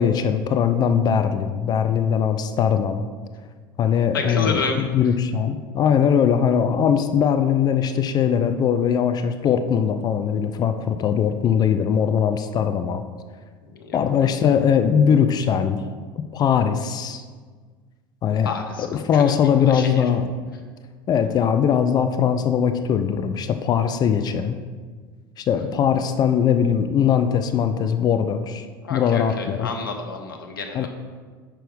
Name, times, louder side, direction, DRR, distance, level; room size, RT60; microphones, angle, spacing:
voice 1, 0.0-3.0 3.8-13.0 13.9-15.8 16.3-17.2 18.2-18.5 18.8-20.3 21.1-24.6 25.4-29.7 30.7-30.9, left 8 dB, 35° left, 8 dB, 0.4 m, -20 dB
voice 2, 4.1-4.8 13.7-14.0 18.4-18.9 19.1-19.2 19.7-20.0 28.8-30.9, left 4 dB, 80° left, 3 dB, 0.8 m, -29 dB
6.2 x 4.4 x 5.1 m, 1.5 s
hypercardioid pair, 75°, 11 cm